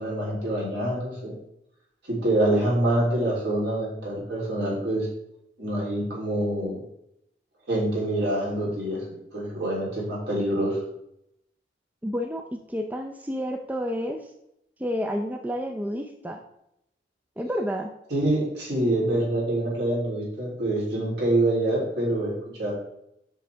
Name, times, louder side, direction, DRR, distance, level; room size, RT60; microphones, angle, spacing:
voice 1, 0.0-1.3 2.1-5.1 5.6-6.8 7.7-10.8 18.1-22.7, right 1 dB, 70° right, -4 dB, 3.2 m, -26 dB
voice 2, 12.0-14.2 14.8-16.4 17.4-17.9, equal, 10° right, 4 dB, 0.4 m, -30 dB
7.8 x 6.6 x 3.4 m, 0.80 s
head